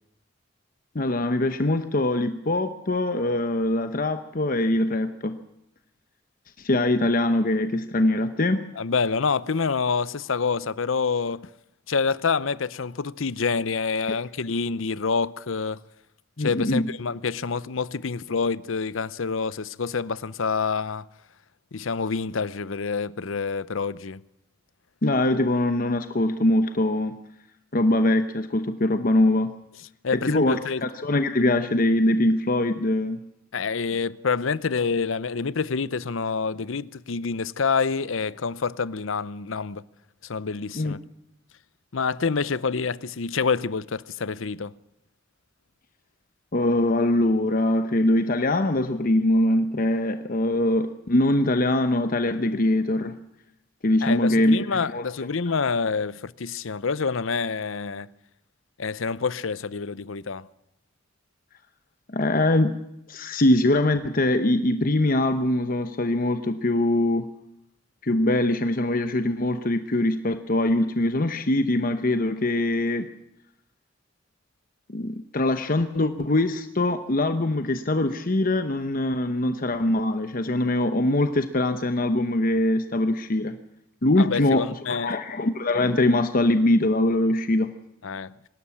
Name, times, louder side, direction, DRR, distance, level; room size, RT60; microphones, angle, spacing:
voice 1, 0.9-5.4 6.6-8.6 16.4-16.8 25.0-27.2 27.7-29.5 30.3-33.2 40.8-41.0 46.5-53.2 53.8-55.0 62.1-62.8 63.1-67.3 68.0-73.1 74.9-83.6 84.0-87.7, left 1 dB, 45° left, 0.9 m, -23 dB
voice 2, 8.8-11.5 11.9-15.8 16.4-21.1 21.7-24.2 30.0-30.8 33.5-39.8 40.2-41.0 41.9-44.7 54.0-58.1 58.8-60.5 84.2-85.2 88.0-88.3, left 5 dB, 80° left, 0.7 m, -27 dB
24.5 x 13.0 x 8.6 m
head